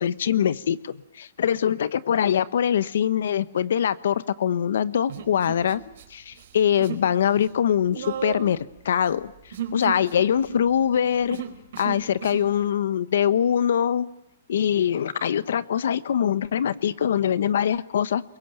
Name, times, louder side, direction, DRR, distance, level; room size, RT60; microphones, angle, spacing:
voice 1, 0.0-5.8 6.1-8.6 8.8-9.3 9.7-11.4 11.8-14.1 14.5-18.2, left 9 dB, 70° left, 16 dB, 1.0 m, -23 dB
Human voice, 5.1-6.0 6.3-7.1 7.3-12.5, right 8 dB, 60° right, 4.4 m, -35 dB
27.5 x 22.5 x 9.1 m, 0.78 s
hypercardioid pair, 165°, 0 cm